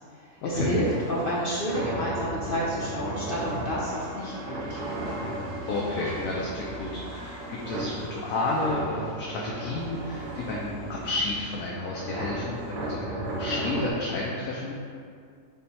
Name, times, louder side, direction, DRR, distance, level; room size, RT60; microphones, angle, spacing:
voice 1, 0.4-5.0, equal, 55° left, -7 dB, 0.6 m, -29 dB
sound 1, 0.8-13.9, right 2 dB, 90° right, 1.1 m, -36 dB
sound 2, 3.0-13.6, equal, 45° right, 0.8 m, -45 dB
voice 2, 5.7-14.7, left 2 dB, 80° left, -4 dB, 1.1 m, -31 dB
5.3 x 2.1 x 4.1 m, 2.2 s
omnidirectional pair, 1.6 m